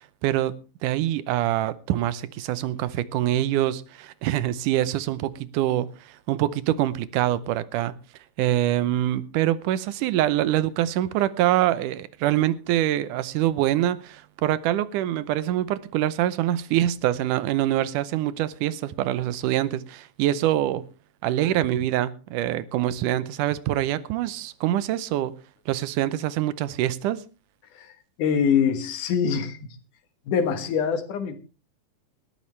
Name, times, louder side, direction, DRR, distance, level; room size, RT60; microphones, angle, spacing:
voice 1, 0.2-0.6 0.8-8.0 8.4-20.9 21.2-25.3 25.7-27.2, right 13 dB, 90° right, 2.3 m, -25 dB
voice 2, 28.2-29.8 30.3-31.3, left 7 dB, 85° left, 3.1 m, -24 dB
19.5 x 13.0 x 3.2 m
omnidirectional pair, 3.5 m